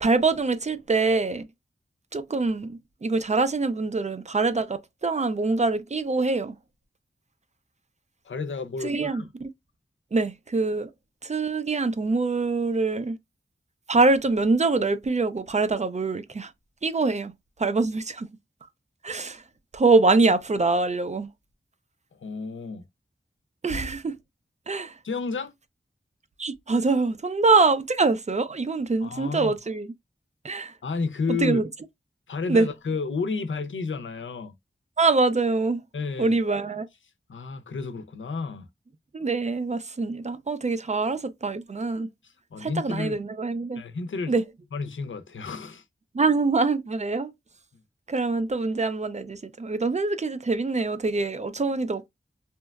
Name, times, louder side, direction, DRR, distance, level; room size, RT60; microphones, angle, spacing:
voice 1, 0.0-1.5 2.1-6.5 8.8-9.3 10.1-10.9 11.2-13.2 13.9-16.5 16.8-17.3 17.6-18.3 19.0-19.4 19.7-21.3 23.6-24.2 24.7-25.0 26.4-29.9 30.4-30.7 31.4-31.6 32.5-32.7 35.0-35.8 36.2-36.9 39.1-42.1 42.6-43.8 44.3-44.4 46.1-47.3 48.1-52.1, right 3 dB, 35° right, 0.4 m, -24 dB
voice 2, 8.2-9.3 22.1-22.8 25.0-25.5 29.0-29.5 30.8-31.6 32.3-34.5 35.9-36.4 37.3-38.7 42.2-43.2 43.8-44.3 44.7-45.8, left 4 dB, 85° left, 0.5 m, -31 dB
2.8 x 2.1 x 2.2 m
wide cardioid pair, 45°, 19 cm